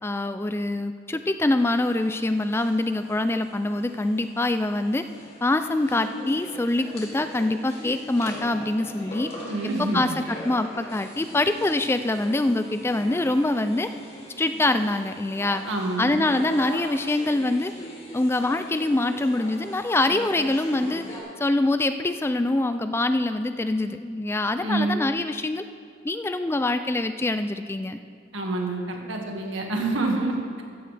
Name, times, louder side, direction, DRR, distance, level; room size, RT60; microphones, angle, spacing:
voice 1, 0.0-5.0 5.4-9.3 9.8-13.9 14.4-15.6 16.0-17.7 18.1-21.1 21.4-25.7 26.0-28.0, left 2 dB, 10° left, 9 dB, 0.3 m, -24 dB
sound 1, 1.6-21.2, left 1 dB, 30° left, 2.6 m, -41 dB
voice 2, 9.4-10.1 15.6-16.3 24.6-25.1 28.3-30.6, right 2 dB, 80° right, 1 dB, 1.9 m, -27 dB
15.0 x 14.0 x 3.4 m, 2.2 s
head